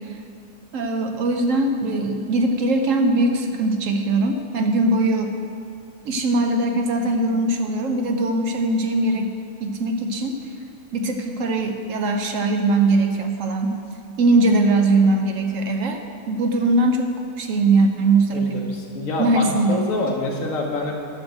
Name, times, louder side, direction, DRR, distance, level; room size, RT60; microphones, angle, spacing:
voice 1, 0.7-5.3 6.0-9.3 9.6-10.4 10.9-13.8 14.2-16.0 16.3-17.1 17.4-18.7 19.2-19.8, right 2 dB, 65° right, 4 dB, 1.0 m, -21 dB
voice 2, 18.3-20.9, left 2 dB, 55° left, 0 dB, 1.7 m, -26 dB
10.5 x 6.3 x 6.5 m, 2.4 s
omnidirectional pair, 1.6 m